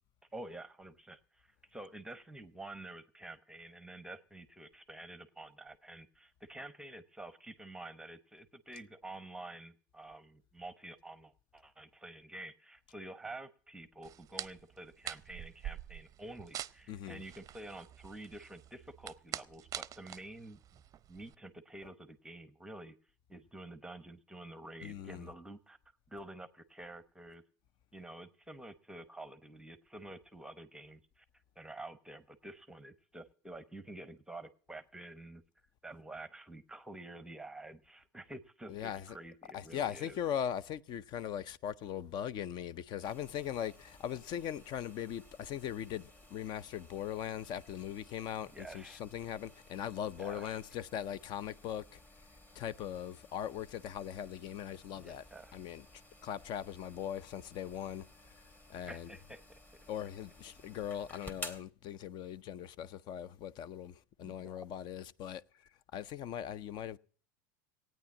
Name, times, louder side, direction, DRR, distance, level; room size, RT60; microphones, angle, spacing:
voice 1, 0.3-20.6 21.1-23.0 23.3-25.8 26.1-27.4 27.9-35.4 35.8-40.2 48.5-49.0 50.2-50.6 54.9-55.6 58.8-59.4 64.2-64.5, right 2 dB, 5° right, 0.9 m, -49 dB
sound 1, 14.0-21.3, right 11 dB, 35° right, 0.6 m, -46 dB
voice 2, 16.9-17.2 24.8-25.3 38.7-39.2 39.5-52.0 52.5-55.2 55.5-55.9 56.2-58.4 58.7-59.1 59.9-67.0, left 10 dB, 45° left, 0.6 m, -40 dB
sound 2, 43.0-61.6, left 1 dB, 20° left, 2.0 m, -55 dB
16.5 x 9.2 x 7.2 m
hypercardioid pair, 105°, 10 cm